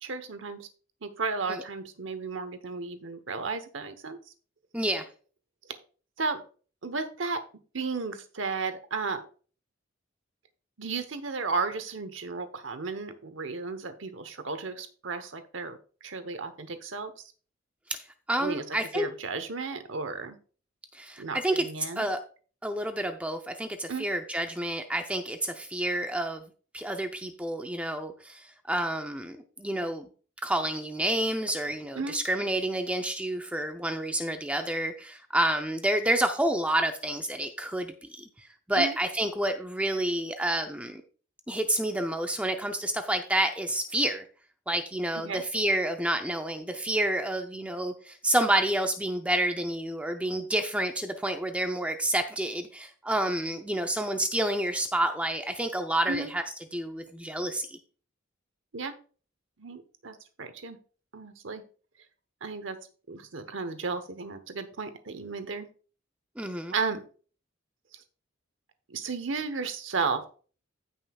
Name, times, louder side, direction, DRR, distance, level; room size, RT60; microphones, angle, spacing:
voice 1, 0.0-0.7 1.0-4.2 6.2-6.4 6.8-7.4 7.7-9.2 10.8-17.2 18.4-18.6 18.9-20.4 21.2-22.1 23.9-24.1 31.9-32.2 38.7-39.0 45.2-45.4 56.1-56.3 58.7-58.9 59.6-60.8 61.1-61.6 62.4-62.8 63.1-65.7 66.7-67.0 68.9-70.3, right 4 dB, 70° right, 10 dB, 1.0 m, -34 dB
voice 2, 4.7-5.1 17.9-18.0 18.3-19.1 20.9-22.2 22.6-26.4 26.7-30.1 30.4-41.0 41.5-44.2 44.7-56.4 56.7-57.8 66.4-66.7, right 1 dB, 5° right, 6 dB, 0.5 m, -29 dB
15.5 x 5.5 x 2.4 m, 0.39 s
head